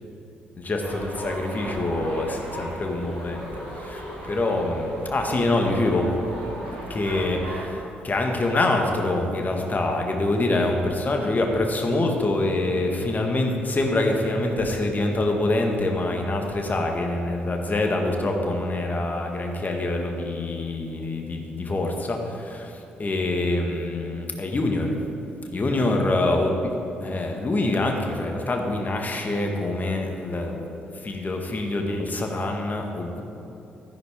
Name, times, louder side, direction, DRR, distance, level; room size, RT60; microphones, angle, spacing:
voice 1, 0.6-3.5 3.7-6.1 6.9-24.9 25.5-26.5 27.0-33.2, left 2 dB, 35° left, 2 dB, 1.7 m, -25 dB
sound 1, 0.8-7.6, equal, 90° right, 2.5 m, -36 dB
13.0 x 10.5 x 3.7 m, 2.9 s
figure-of-eight pair, 40°, 5 cm